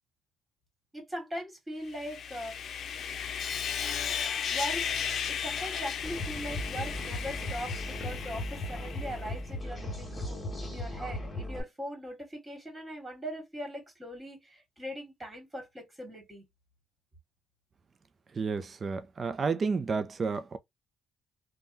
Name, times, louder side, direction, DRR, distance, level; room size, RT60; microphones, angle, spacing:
voice 1, 0.9-2.6 4.5-4.9 5.3-16.4, equal, 20° right, 2.0 m, -40 dB
Sawing, 1.9-9.3, left 7 dB, 65° left, 0.5 m, -35 dB
sound 1, 6.0-11.6, left 1 dB, 20° left, 1.8 m, -37 dB
voice 2, 18.4-20.6, right 4 dB, 40° right, 0.5 m, -31 dB
3.4 x 2.3 x 2.6 m
cardioid pair, 90°, 0 cm